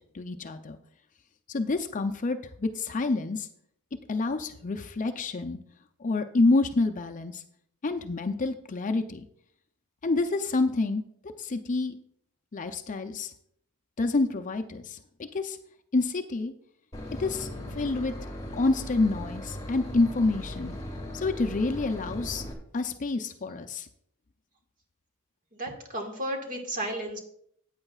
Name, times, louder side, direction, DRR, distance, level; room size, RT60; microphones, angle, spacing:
voice 1, 0.1-0.8 1.5-3.5 4.1-5.6 6.0-7.4 7.8-9.2 10.0-11.0 11.4-11.9 12.5-13.3 14.0-15.0 15.3-15.6 15.9-16.5 17.2-18.1 18.5-20.7 21.1-22.5 22.7-23.9, left 3 dB, 35° left, 7 dB, 0.5 m, -28 dB
Boat Water vehicle / Engine, 16.9-22.5, left 1 dB, 15° left, 1.7 m, -38 dB
voice 2, 25.5-27.2, right 1 dB, 40° right, 3 dB, 1.7 m, -33 dB
14.5 x 8.9 x 2.4 m, 0.68 s
head